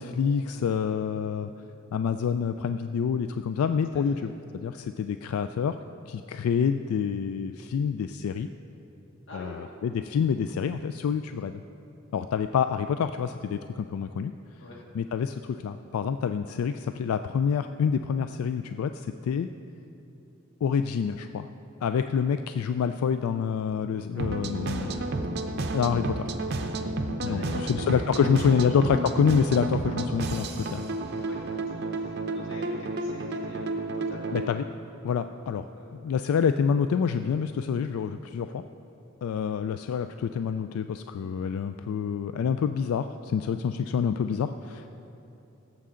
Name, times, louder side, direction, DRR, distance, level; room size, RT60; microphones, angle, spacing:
voice 1, 0.0-1.5 1.9-5.7 6.1-8.5 9.3-9.6 9.8-11.6 12.1-14.3 14.9-19.5 20.6-21.5 21.8-24.9 25.7-26.3 27.2-30.8 34.3-34.6 35.0-35.7 35.9-38.6 39.2-44.9, left 7 dB, 90° left, 9 dB, 0.3 m, -27 dB
voice 2, 9.3-9.7 14.6-14.8 24.7-25.2 26.4-26.5 27.2-29.1 31.1-34.5 35.7-35.9 44.7-44.9, left 1 dB, 55° left, -3 dB, 2.1 m, -45 dB
sound 1, 24.1-34.5, right 2 dB, 50° right, 0.6 m, -31 dB
17.0 x 7.5 x 3.8 m, 2.8 s
head